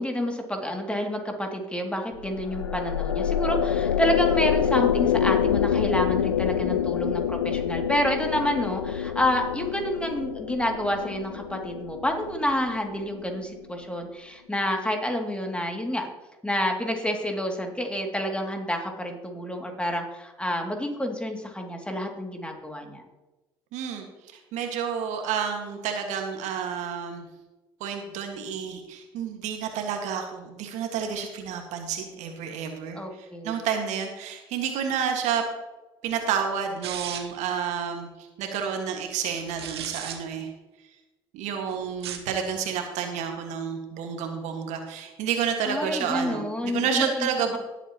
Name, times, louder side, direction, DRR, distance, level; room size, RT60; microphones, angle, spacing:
voice 1, 0.0-16.1 16.4-23.0 32.9-33.6 45.7-47.3, equal, 10° left, 3 dB, 2.5 m, -29 dB
sound 1, 2.2-13.6, left 8 dB, 90° left, 0.4 m, -27 dB
voice 2, 23.7-24.1 24.5-27.2 27.8-35.4 36.0-38.1 38.4-40.5 41.3-47.6, right 7 dB, 65° right, 4 dB, 1.8 m, -30 dB
sound 2, 36.8-37.5 39.4-40.2 41.9-42.3, right 9 dB, 80° right, 1.0 m, -35 dB
18.5 x 8.1 x 3.0 m, 1.1 s
hypercardioid pair, 55°, 13 cm